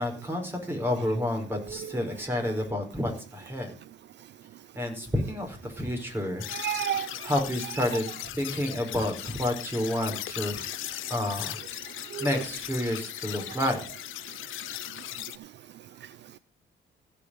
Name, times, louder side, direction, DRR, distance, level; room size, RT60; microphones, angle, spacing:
voice 1, 0.0-3.7 4.7-6.5 7.2-8.1 8.3-10.6 11.1-11.6 12.2-13.8, left 1 dB, 10° right, 4.8 m, -29 dB
sound 1, 6.4-15.4, left 15 dB, 90° left, 0.7 m, -38 dB
voice 2, 6.5-8.0 12.1-12.4 13.6-13.7, right 11 dB, 65° right, 0.5 m, -33 dB
16.0 x 5.5 x 6.3 m
cardioid pair, 90°, 20 cm